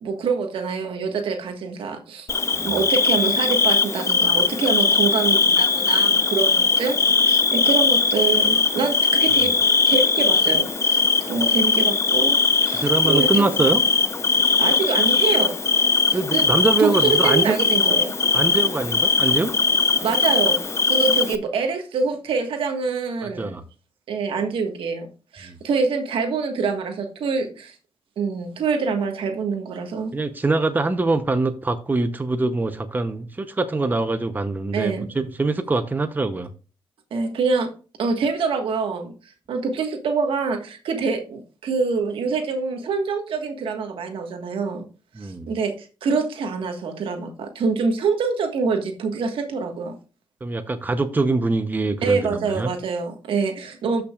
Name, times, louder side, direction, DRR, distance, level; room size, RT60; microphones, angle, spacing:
voice 1, 0.0-2.3 2.6-9.5 9.9-11.0 11.3-13.5 14.6-15.6 16.1-16.5 16.8-18.1 20.0-23.6 24.1-25.1 25.3-27.7 28.2-30.1 34.7-35.1 37.1-37.7 38.0-39.1 39.5-44.8 45.2-49.9 52.0-54.0, right 4 dB, 75° right, 1.6 m, -25 dB
Bird / Cricket, 2.3-21.4, left 4 dB, 30° left, 0.7 m, -20 dB
voice 2, 12.8-13.8 16.1-17.6 18.3-19.5 23.4-23.6 25.4-25.6 30.1-36.5 45.1-45.5 50.4-52.7, right 3 dB, 20° right, 0.7 m, -23 dB
13.0 x 5.8 x 2.4 m
cardioid pair, 90°, 9 cm